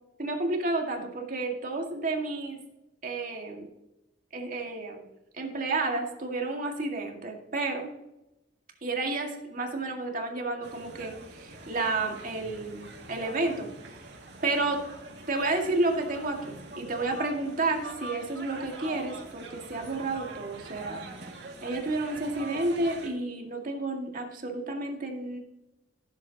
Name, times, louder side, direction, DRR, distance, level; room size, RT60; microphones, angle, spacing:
voice 1, 0.2-2.6 3.0-3.7 4.3-5.1 5.4-7.9 8.8-13.7 14.0-14.1 14.4-14.8 15.3-21.0 21.6-25.4, right 2 dB, 50° right, 1 dB, 2.0 m, -31 dB
sound 1, 10.6-23.1, right 2 dB, 65° right, 2.2 m, -44 dB
15.5 x 7.8 x 2.9 m, 0.91 s
head